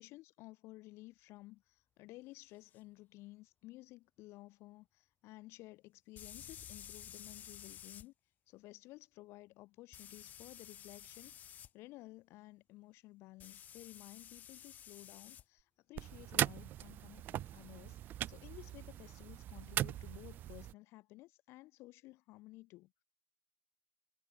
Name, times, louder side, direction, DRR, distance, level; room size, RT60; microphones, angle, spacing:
voice 1, 0.0-8.1 8.5-11.4 11.7-18.0 18.3-22.9, left 19 dB, 55° left, 2.2 m, -55 dB
sound 1, 2.7-2.8 6.2-8.1 9.9-11.7 13.4-15.4, left 10 dB, 30° left, 2.5 m, -52 dB
sound 2, 15.9-20.7, right 12 dB, 35° right, 0.5 m, -40 dB
cardioid pair, 175°, 5 cm